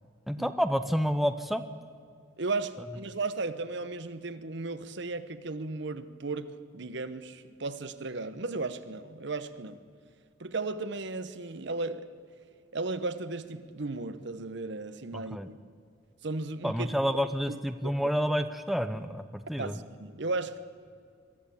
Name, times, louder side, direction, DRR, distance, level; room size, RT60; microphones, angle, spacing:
voice 1, 0.3-1.6 15.3-15.5 16.6-19.8, equal, ahead, 9 dB, 0.6 m, -29 dB
voice 2, 2.4-9.8 10.4-12.1 12.7-15.5 16.2-16.9 17.5-18.1 19.6-20.6, right 3 dB, 60° right, 12 dB, 1.0 m, -35 dB
22.5 x 14.0 x 8.4 m, 2.3 s
head